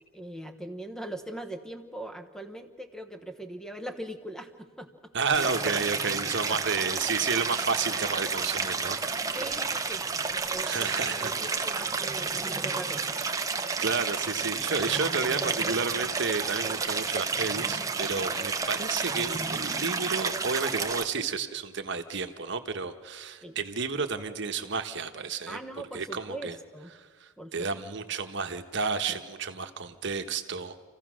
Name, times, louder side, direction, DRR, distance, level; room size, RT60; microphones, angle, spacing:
voice 1, 0.1-5.1 6.5-6.6 9.3-10.0 10.5-13.2 23.4-23.6 25.5-26.9 27.4-27.8, right 1 dB, 5° left, 8 dB, 1.0 m, -41 dB
voice 2, 5.1-9.4 10.6-11.3 11.6-11.8 13.8-25.6 25.9-26.5 27.0-30.8, right 5 dB, 55° right, 7 dB, 1.1 m, -31 dB
Stream, 5.3-21.1, right 4 dB, 15° right, 0.7 m, -31 dB
27.5 x 15.5 x 6.3 m, 1.5 s
head